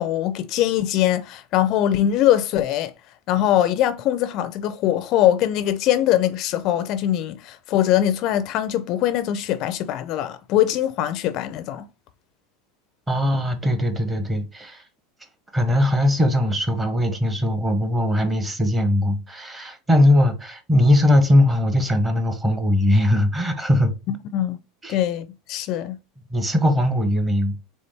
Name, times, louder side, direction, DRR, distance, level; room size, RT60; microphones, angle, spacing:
voice 1, 0.0-2.9 3.3-11.8 24.1-24.6 24.9-26.0, left 12 dB, 45° left, 0.4 m, -22 dB
voice 2, 13.1-14.8 15.5-23.9 24.8-25.0 26.3-27.6, left 1 dB, 15° right, 0.9 m, -20 dB
4.1 x 3.5 x 3.3 m
supercardioid pair, 140°, 0 cm